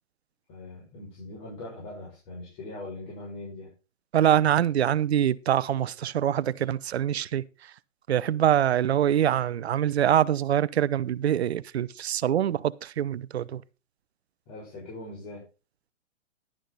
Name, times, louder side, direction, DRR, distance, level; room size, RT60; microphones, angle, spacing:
voice 1, 0.5-3.7 14.5-15.4, left 2 dB, 35° left, 6.2 m, -41 dB
voice 2, 4.1-7.4 8.1-13.6, right 10 dB, 55° right, 0.7 m, -24 dB
11.5 x 10.0 x 4.1 m
figure-of-eight pair, 130°, 38 cm